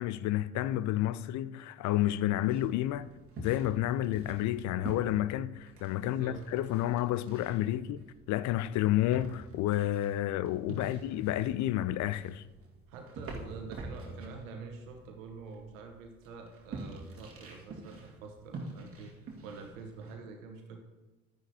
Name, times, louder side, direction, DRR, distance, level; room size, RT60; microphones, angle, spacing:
voice 1, 0.0-3.1 3.4-12.4, left 13 dB, 45° left, 0.5 m, -30 dB
sound 1, 2.5-20.1, right 2 dB, 35° right, 2.1 m, -47 dB
voice 2, 6.0-6.5 10.8-11.0 12.9-20.8, right 4 dB, 75° right, 1.3 m, -46 dB
12.0 x 9.8 x 2.8 m
hypercardioid pair, 60°, 40 cm